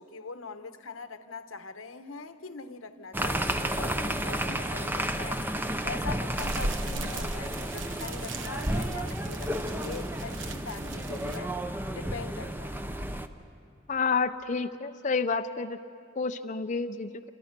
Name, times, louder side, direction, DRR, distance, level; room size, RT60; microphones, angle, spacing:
voice 1, 0.0-11.6 11.9-12.8, left 4 dB, 90° left, 10 dB, 1.1 m, -42 dB
sound 1, 3.1-13.3, right 1 dB, 10° right, 0.7 m, -32 dB
sound 2, 6.4-11.4, right 2 dB, 65° right, 1.1 m, -38 dB
voice 2, 13.9-15.8 16.2-17.1, left 4 dB, 40° left, 7 dB, 0.5 m, -29 dB
28.5 x 26.0 x 5.9 m, 2.4 s
head